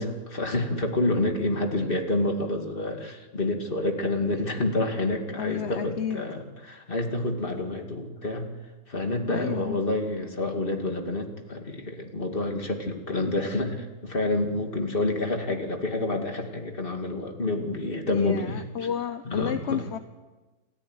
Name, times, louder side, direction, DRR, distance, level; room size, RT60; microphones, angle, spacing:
voice 1, 0.0-8.5 8.9-18.6 19.2-19.8, left 2 dB, 35° left, 4 dB, 2.6 m, -28 dB
voice 2, 5.4-6.2 9.3-9.8 18.1-20.0, left 8 dB, 50° left, 9 dB, 1.0 m, -31 dB
28.5 x 14.0 x 9.7 m, 1.2 s
omnidirectional pair, 1.7 m